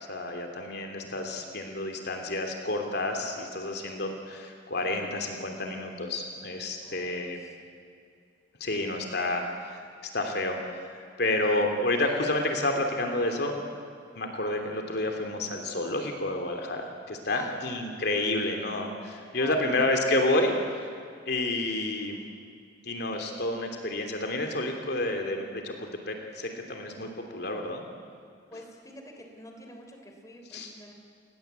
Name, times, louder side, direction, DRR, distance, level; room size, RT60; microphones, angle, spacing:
voice 1, 0.1-7.4 8.6-9.8 10.1-13.6 14.2-20.5 20.8-20.9 21.3-22.2 22.8-27.9 30.5-30.7, left 2 dB, 60° left, 3 dB, 3.1 m, -30 dB
voice 2, 6.8-7.6 17.3-17.6 19.3-19.8 28.5-30.9, left 1 dB, 20° left, 3 dB, 3.4 m, -47 dB
29.5 x 19.5 x 8.3 m, 2.3 s
head